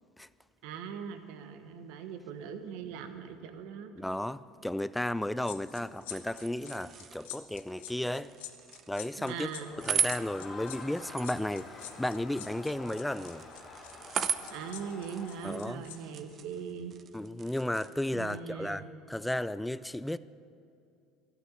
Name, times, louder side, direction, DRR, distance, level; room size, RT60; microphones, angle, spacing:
voice 1, 0.6-3.9 9.2-9.8 14.5-17.0 18.1-18.9, right 7 dB, 65° right, 1.1 m, -40 dB
voice 2, 4.0-8.3 8.9-9.5 9.8-13.5 15.4-15.8 17.1-20.2, left 1 dB, 5° left, 0.4 m, -34 dB
sound 1, 5.4-16.0 16.3-16.5, left 13 dB, 75° left, 0.9 m, -46 dB
sound 2, 6.0-18.4, right 7 dB, 40° right, 0.6 m, -39 dB
Crowd, 9.2-16.1, left 3 dB, 30° left, 3.6 m, -48 dB
12.5 x 9.0 x 7.8 m
hypercardioid pair, 75°, 0 cm